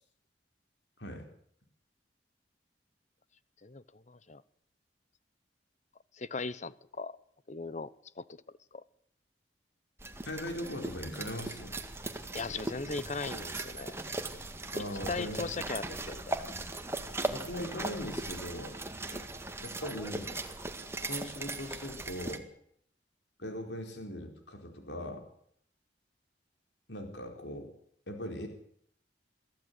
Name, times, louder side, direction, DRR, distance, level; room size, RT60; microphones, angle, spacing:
voice 1, 3.6-4.4 6.2-7.1 7.5-8.4 8.7-8.8 12.3-13.9 15.1-16.5 19.1-19.3, left 3 dB, 40° left, 1.0 m, -38 dB
sound 1, 10.0-22.4, right 2 dB, 15° right, 2.0 m, -39 dB
voice 2, 10.2-11.8 14.7-15.5 17.3-18.8 19.6-20.4 21.0-22.4 23.4-25.2 26.9-27.7 28.1-28.5, equal, 80° left, 4.3 m, -40 dB
23.0 x 15.0 x 8.3 m
head